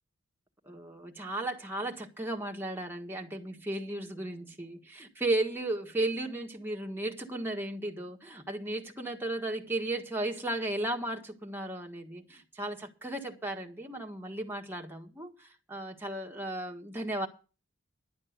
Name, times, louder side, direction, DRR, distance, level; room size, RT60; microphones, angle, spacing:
voice 1, 0.7-17.3, right 1 dB, 10° right, 1.5 m, -35 dB
11.5 x 8.7 x 6.6 m
head